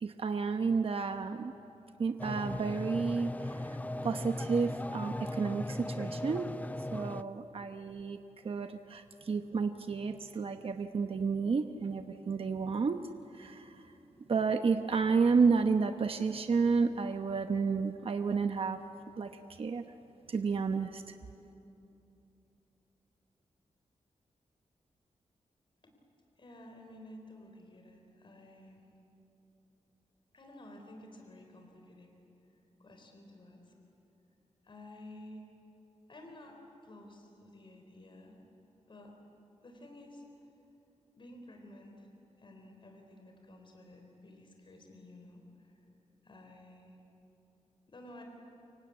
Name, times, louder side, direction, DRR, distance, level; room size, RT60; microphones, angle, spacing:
voice 1, 0.0-1.5 2.0-3.8 4.0-6.5 6.9-8.2 8.4-13.0 13.3-13.8 14.3-18.8 19.2-19.3 19.6-19.8 20.3-21.0, right 5 dB, 50° right, 7 dB, 0.9 m, -31 dB
sound 1, 2.2-7.2, left 1 dB, 15° left, 0.5 m, -38 dB
voice 2, 26.4-28.9 30.3-32.1 32.8-33.7 34.6-35.5 36.1-38.4 38.9-39.2 39.6-40.5 41.2-42.1 42.4-45.8 46.2-47.0 47.9-48.2, left 1 dB, 45° left, 3 dB, 4.0 m, -52 dB
29.0 x 24.0 x 8.4 m, 2.9 s
wide cardioid pair, 110°, 12 cm